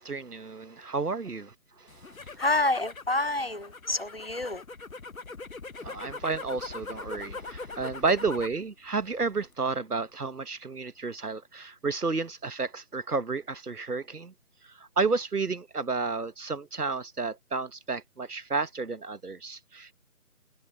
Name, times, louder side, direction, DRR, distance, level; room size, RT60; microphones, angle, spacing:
voice 1, 0.0-2.1 5.8-14.3 14.6-19.9, right 4 dB, 90° right, 1.3 m, -31 dB
sound 1, 1.9-8.6 9.0-9.5, left 3 dB, 65° left, 1.1 m, -42 dB
voice 2, 2.4-4.6, left 2 dB, 40° left, 0.8 m, -28 dB
figure-of-eight pair, 165°, 44 cm